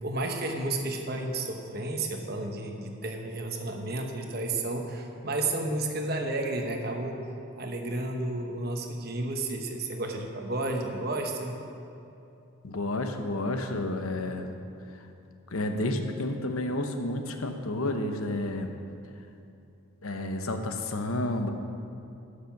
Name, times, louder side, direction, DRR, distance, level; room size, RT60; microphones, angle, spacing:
voice 1, 0.0-7.2 7.6-11.5, right 2 dB, 45° right, 3 dB, 1.1 m, -32 dB
voice 2, 12.6-14.5 15.0-15.1 15.5-18.7 20.0-21.5, left 1 dB, 80° left, 6 dB, 0.9 m, -30 dB
13.0 x 6.7 x 5.9 m, 2.8 s
head